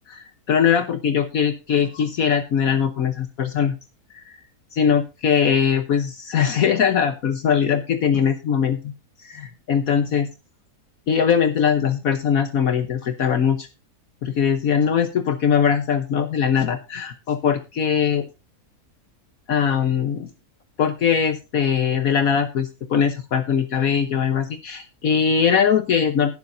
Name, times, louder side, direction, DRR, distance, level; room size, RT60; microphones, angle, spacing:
voice 1, 0.1-3.8 4.1-4.4 4.7-8.9 9.2-10.3 11.1-13.7 14.2-18.2 19.5-20.3 20.8-26.3, left 7 dB, 65° left, 8 dB, 1.3 m, -21 dB
20.0 x 7.1 x 2.6 m, 0.28 s
omnidirectional pair, 1.7 m